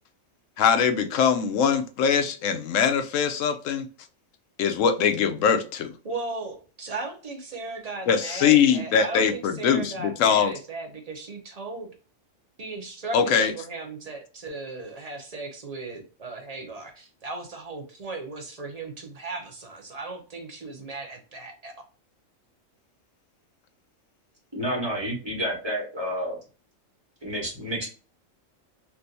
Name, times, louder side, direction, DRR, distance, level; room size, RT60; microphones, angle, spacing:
voice 1, 0.6-3.9 4.6-5.9 8.1-10.5 13.1-13.5, left 7 dB, 75° left, 0.9 m, -22 dB
voice 2, 6.0-11.9 12.6-21.8, right 3 dB, 40° right, 0.7 m, -37 dB
voice 3, 24.5-26.4 27.2-27.9, equal, 20° right, 1.3 m, -29 dB
3.3 x 2.6 x 2.6 m
omnidirectional pair, 1.4 m